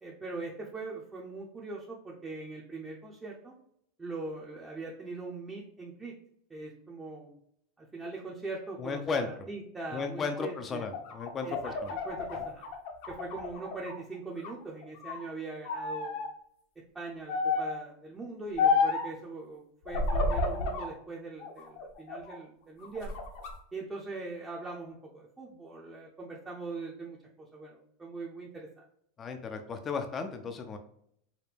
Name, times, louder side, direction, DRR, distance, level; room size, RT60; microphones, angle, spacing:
voice 1, 0.0-3.5 4.0-6.1 6.5-7.4 7.8-10.9 11.4-12.6 13.1-16.2 16.9-23.2 23.7-28.7, right 3 dB, 15° right, -3 dB, 0.6 m, -41 dB
voice 2, 8.8-9.3 9.9-11.9 29.2-30.8, left 5 dB, 25° left, 6 dB, 0.5 m, -35 dB
sound 1, 10.8-14.0 14.4-15.3 15.7-16.3 17.3-17.8 18.6-19.1 19.9-20.9 21.4-22.4 22.8-23.5, left 4 dB, 60° left, 0.8 m, -31 dB
4.9 x 2.2 x 3.3 m, 0.70 s
supercardioid pair, 135°, 0 cm